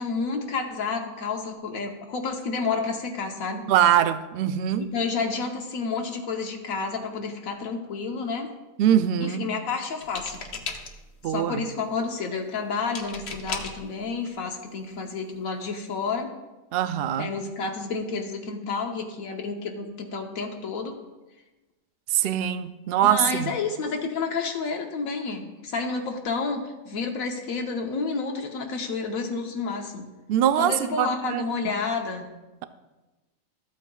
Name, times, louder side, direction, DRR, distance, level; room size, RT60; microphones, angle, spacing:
voice 1, 0.0-3.6 4.9-8.5 9.2-10.4 11.3-16.3 17.2-20.9 23.0-30.1 30.6-32.3, left 4 dB, 85° left, 2 dB, 1.3 m, -30 dB
voice 2, 3.7-4.9 8.8-9.5 11.2-11.6 16.7-17.3 22.1-23.5 30.3-31.4, right 10 dB, 65° right, 11 dB, 0.6 m, -23 dB
sound 1, 10.0-11.2 12.9-13.9 14.8-14.9 15.3-15.6, left 4 dB, 55° left, 1.1 m, -36 dB
14.0 x 8.6 x 2.3 m, 1.1 s
omnidirectional pair, 1.4 m